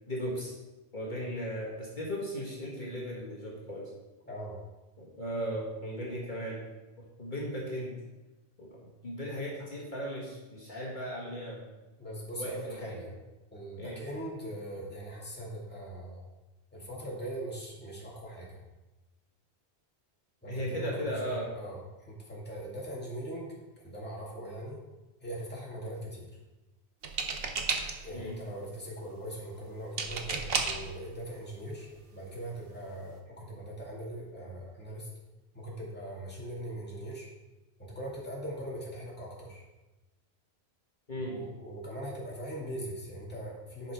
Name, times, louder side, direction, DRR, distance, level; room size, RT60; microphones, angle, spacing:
voice 1, 0.1-0.5 0.9-3.9 5.0-6.6 7.2-8.0 8.6-11.7 12.4-13.0 13.8-14.0 20.5-21.6 28.1-28.3 41.1-41.4, equal, 45° left, -5 dB, 2.0 m, -36 dB
voice 2, 12.0-13.1 13.5-16.2 16.7-18.6 20.4-21.2 21.5-24.8 25.2-26.3 28.0-35.1 35.5-37.3 37.8-39.6 41.1-43.9, right 1 dB, 10° left, -5 dB, 2.1 m, -41 dB
sound 1, 27.0-28.2 30.0-30.9 31.9-32.0 32.3-32.6, right 4 dB, 60° right, 1.1 m, -32 dB
10.5 x 5.6 x 4.7 m, 1.1 s
omnidirectional pair, 1.1 m